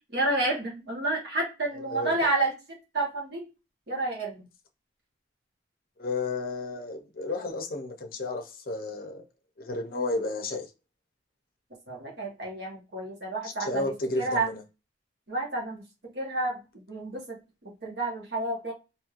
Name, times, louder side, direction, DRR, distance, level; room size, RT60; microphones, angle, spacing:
voice 1, 0.1-2.5 2.9-3.4 3.9-4.5 11.9-14.5 15.3-15.8 16.1-16.6 16.9-17.4 17.8-18.7, right 2 dB, 60° right, 1.2 m, -30 dB
voice 2, 6.0-9.3 9.6-10.7 13.4-14.6, left 2 dB, 50° left, 0.6 m, -32 dB
3.1 x 2.7 x 2.4 m
head